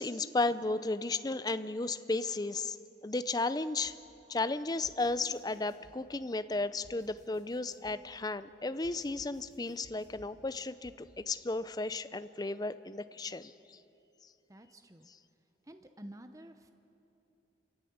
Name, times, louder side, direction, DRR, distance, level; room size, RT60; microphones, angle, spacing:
voice 1, 0.0-2.8 3.0-4.0 4.3-13.8, left 3 dB, 20° left, 13 dB, 0.5 m, -34 dB
sound 1, 3.8-4.0 4.8-6.0 6.8-8.0 8.8-10.3 10.8-11.0, equal, 40° right, 6.2 m, -59 dB
voice 2, 14.5-15.1 15.6-16.7, right 1 dB, 20° right, 7 dB, 0.8 m, -51 dB
29.5 x 14.0 x 8.7 m, 2.9 s
head